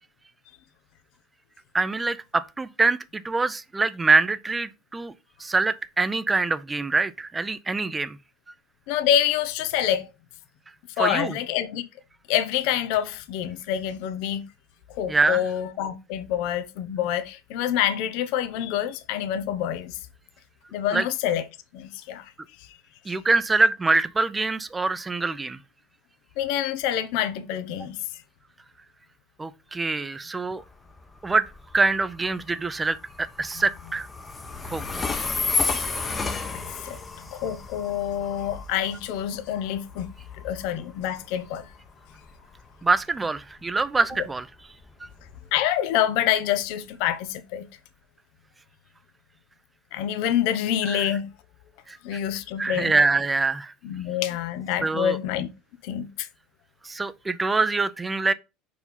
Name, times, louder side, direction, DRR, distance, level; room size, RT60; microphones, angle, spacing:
voice 1, 1.7-5.1 5.4-8.2 11.0-11.3 15.1-15.4 20.9-21.0 23.1-25.6 29.4-30.6 31.2-31.5 31.7-34.1 34.6-35.0 42.8-44.5 50.9-51.1 51.9-52.2 52.6-53.7 54.8-55.2 56.8-58.3, right 3 dB, 20° right, 0.7 m, -24 dB
voice 2, 8.9-10.1 11.0-11.8 12.3-14.4 14.9-20.0 20.7-21.4 21.7-22.3 22.6-22.7 23.1-23.2 26.4-28.0 36.5-40.1 40.4-41.7 45.5-47.7 49.9-51.3 52.0-52.9 53.8-55.5 55.8-56.3, left 10 dB, 65° left, 0.9 m, -27 dB
Train, 30.6-45.3, left 4 dB, 25° left, 1.0 m, -33 dB
5.3 x 4.9 x 4.0 m
hypercardioid pair, 75°, 0 cm